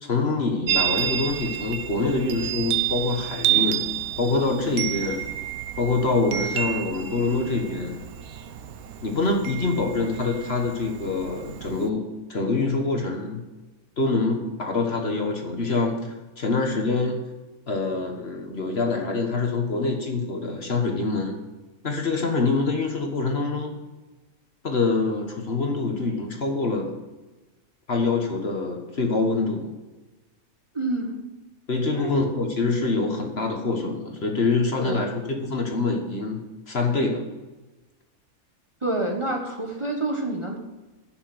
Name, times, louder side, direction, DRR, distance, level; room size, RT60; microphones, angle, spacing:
voice 1, 0.0-3.9 4.2-5.3 5.8-8.0 9.0-13.4 14.0-17.2 17.7-21.4 21.8-23.8 24.6-26.9 27.9-29.7 31.7-37.2, left 3 dB, 45° left, 2 dB, 1.5 m, -25 dB
Chime, 0.7-11.9, right 12 dB, 90° right, 1.2 m, -30 dB
voice 2, 30.7-31.2 31.9-32.2 34.8-35.2 38.8-40.6, right 2 dB, 20° right, 0 dB, 1.2 m, -28 dB
11.0 x 6.2 x 7.7 m, 1.1 s
omnidirectional pair, 1.5 m